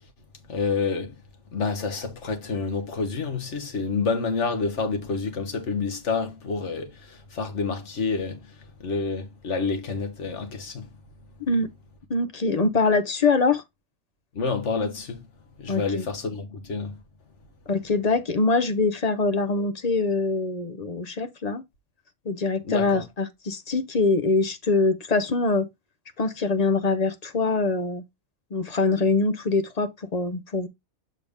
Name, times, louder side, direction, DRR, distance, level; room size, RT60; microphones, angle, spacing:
voice 1, 0.5-1.1 1.5-8.5 8.8-10.9 14.3-15.2 15.6-17.0 22.6-23.0, left 4 dB, 75° left, 1.5 m, -28 dB
voice 2, 11.4-11.7 12.1-13.6 15.7-16.0 17.7-21.6 22.3-25.7 26.2-28.0 28.5-30.7, left 3 dB, 40° left, 0.7 m, -24 dB
6.7 x 4.2 x 3.5 m
omnidirectional pair, 1.2 m